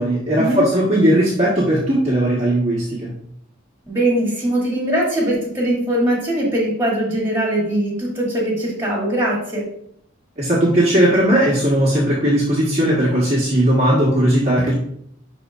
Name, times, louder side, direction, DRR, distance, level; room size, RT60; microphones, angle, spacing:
voice 1, 0.0-3.1 10.4-14.7, right 1 dB, 30° right, -7 dB, 1.5 m, -17 dB
voice 2, 3.9-9.6, right 1 dB, 10° right, -4 dB, 2.7 m, -21 dB
11.0 x 4.2 x 2.5 m, 0.70 s
head